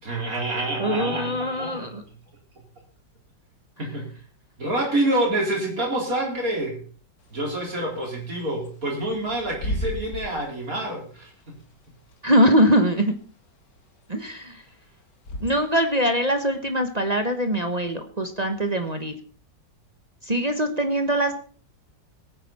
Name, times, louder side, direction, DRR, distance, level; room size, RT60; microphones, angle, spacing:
voice 1, 0.0-1.9 3.8-4.0 4.6-6.8 7.3-11.3, right 1 dB, 50° right, -1 dB, 4.5 m, -27 dB
voice 2, 0.8-2.0 12.2-13.1 14.1-14.6 15.4-19.2 20.2-21.3, equal, 25° right, 6 dB, 1.0 m, -22 dB
Bird / Wind, 7.2-15.9, equal, 70° left, 2.7 m, -37 dB
19.5 x 9.3 x 4.2 m, 0.42 s
omnidirectional pair, 2.0 m